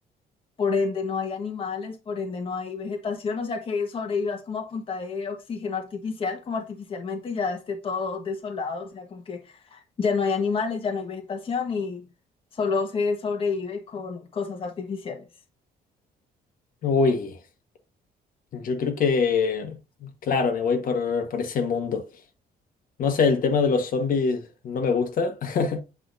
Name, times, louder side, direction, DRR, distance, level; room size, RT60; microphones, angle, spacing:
voice 1, 0.6-12.0 12.5-15.2, left 5 dB, 35° left, 1.3 m, -29 dB
voice 2, 16.8-17.4 18.5-22.1 23.0-25.8, left 5 dB, 55° left, 1.4 m, -24 dB
8.1 x 4.9 x 2.6 m
cardioid pair, 160°, 17 cm